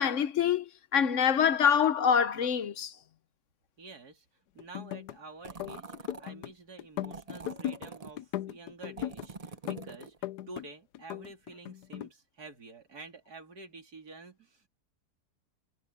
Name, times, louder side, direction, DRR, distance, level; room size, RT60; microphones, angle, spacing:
voice 1, 0.0-2.9, left 8 dB, 55° left, 1.1 m, -25 dB
voice 2, 3.8-4.3 4.5-14.7, right 3 dB, 75° right, 3.6 m, -49 dB
sound 1, 4.6-5.2 5.5-6.5 6.8-7.9 8.2-9.3 9.7-10.7 10.9-12.1, left 12 dB, 90° left, 1.3 m, -37 dB
sound 2, 5.4-6.3 7.0-8.1 9.0-10.2, right 4 dB, 30° right, 0.9 m, -45 dB
omnidirectional pair, 1.7 m